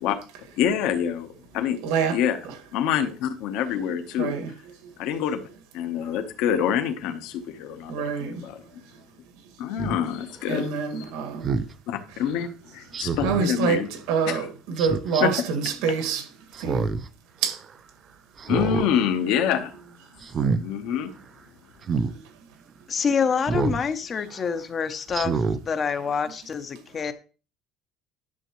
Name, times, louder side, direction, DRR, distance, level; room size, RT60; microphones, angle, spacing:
voice 1, 0.6-1.8 2.1-2.4 2.7-4.3 5.0-5.4 5.7-8.0 8.4-8.6 9.6-10.7 11.0-11.1 11.9-13.9 14.3-14.4 15.2-15.4 18.5-19.7 20.6-21.1, left 9 dB, 60° left, 1.0 m, -26 dB
voice 2, 1.8-2.2 2.4-2.6 4.2-4.5 4.8-4.9 7.9-8.5 10.5-11.5 13.2-16.3 16.6-17.0 17.4-17.6 22.0-22.3 26.7-26.8, right 6 dB, 85° right, 1.9 m, -27 dB
Speech synthesizer, 9.8-10.0 11.4-11.7 12.9-13.4 14.8-15.2 16.5-17.1 17.5-17.6 18.4-18.9 19.3-19.6 20.2-20.6 21.8-22.1 23.5-23.8 24.3-24.4 25.1-25.6 26.1-26.2, right 5 dB, 25° right, 0.4 m, -26 dB
voice 3, 22.9-27.1, left 6 dB, 25° left, 0.6 m, -26 dB
11.0 x 6.9 x 3.1 m
cardioid pair, 180°, 0 cm